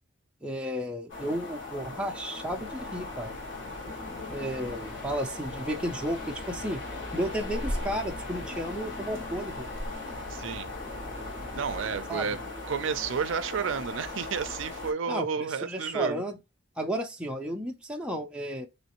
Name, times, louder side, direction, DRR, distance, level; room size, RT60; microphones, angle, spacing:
voice 1, 0.4-3.4 4.3-6.8 7.1-9.7 12.1-12.4 15.1-16.4 16.8-18.7, equal, 5° right, 0.4 m, -33 dB
sound 1, 1.1-14.9, left 3 dB, 60° left, 1.5 m, -39 dB
sound 2, 2.5-12.0, equal, 30° left, 0.7 m, -42 dB
voice 2, 10.3-10.7 11.5-16.2, right 6 dB, 65° right, 0.4 m, -31 dB
4.2 x 3.0 x 2.9 m
head